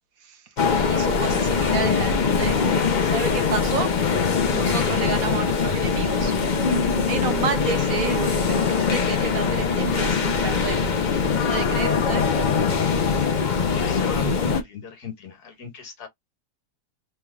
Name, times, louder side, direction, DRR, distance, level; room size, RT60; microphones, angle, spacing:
sound 1, 0.6-14.6, left 5 dB, 50° left, 0.5 m, -22 dB
voice 1, 0.7-2.6 3.0-3.9 4.5-6.3 7.0-10.8 11.4-12.3 13.1-13.3, right 6 dB, 60° right, 1.1 m, -31 dB
voice 2, 13.7-16.1, left 3 dB, 70° left, 1.8 m, -35 dB
3.6 x 3.2 x 2.3 m
omnidirectional pair, 1.8 m